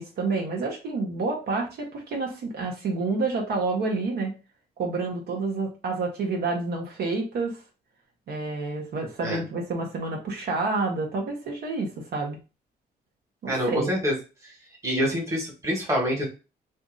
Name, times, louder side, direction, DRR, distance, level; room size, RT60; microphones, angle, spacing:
voice 1, 0.0-4.3 4.8-7.6 8.3-12.4 13.4-13.9, right 3 dB, 75° right, 1 dB, 1.0 m, -29 dB
voice 2, 13.5-14.1 14.4-14.5 14.8-16.3, equal, 15° right, -2 dB, 1.2 m, -26 dB
2.7 x 2.6 x 3.7 m, 0.31 s
cardioid pair, 150°, 17 cm